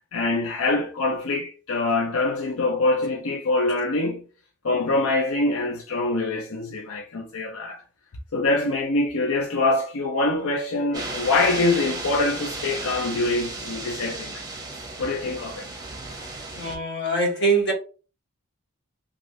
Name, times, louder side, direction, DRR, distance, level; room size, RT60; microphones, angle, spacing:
voice 1, 0.1-4.3 4.6-7.8 8.3-14.4 15.0-15.7, left 2 dB, 80° left, 0.6 m, -24 dB
sound 1, 10.9-16.8, right 3 dB, 20° right, 0.7 m, -34 dB
voice 2, 16.5-17.7, right 3 dB, 55° left, 1.0 m, -23 dB
3.2 x 2.6 x 2.6 m
head